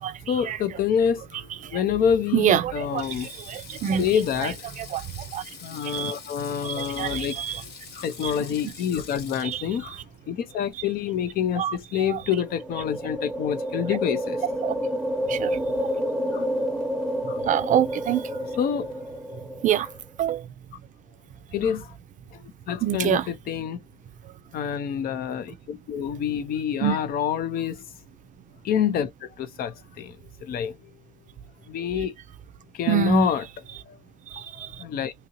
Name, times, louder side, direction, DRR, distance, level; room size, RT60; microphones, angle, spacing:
voice 1, 0.3-3.3 4.0-4.6 5.6-7.4 7.9-14.4 16.3-16.4 17.3-17.4 18.6-18.9 19.3-19.4 19.7-19.9 21.5-22.0 22.3-23.8 24.5-27.9 28.6-30.7 31.7-32.1 32.7-33.5 33.9-34.0 34.5-35.1, left 8 dB, 65° left, 0.6 m, -27 dB
voice 2, 2.3-4.0 4.4-4.5 4.8-5.4 5.8-6.1 6.6-7.6 8.2-8.3 9.4-9.6 11.6-11.8 12.1-12.2 14.6-14.8 15.3-15.9 17.4-18.3 19.6-19.9 20.2-20.5 22.8-23.3 26.8-27.0 32.9-33.3 34.3-34.8, right 9 dB, 50° right, 0.4 m, -26 dB
Sink (filling or washing), 2.8-11.3 11.6-11.8 13.0-13.2, left 5 dB, 80° left, 1.2 m, -45 dB
sound 1, 12.3-20.0, equal, 5° left, 1.0 m, -29 dB
2.8 x 2.7 x 2.9 m
cardioid pair, 110°, 17 cm